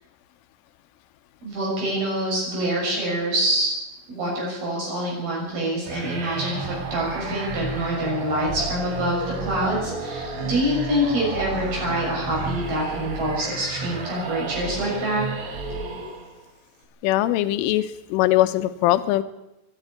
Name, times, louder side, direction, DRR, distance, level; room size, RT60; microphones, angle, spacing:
voice 1, 1.4-3.7 4.1-15.2, right 1 dB, 50° right, -3 dB, 8.5 m, -26 dB
sound 1, 5.9-16.4, right 3 dB, 75° right, 6.4 m, -32 dB
voice 2, 17.0-19.2, left 15 dB, 80° left, 11 dB, 3.4 m, -21 dB
22.0 x 12.5 x 9.7 m, 0.92 s
omnidirectional pair, 5.9 m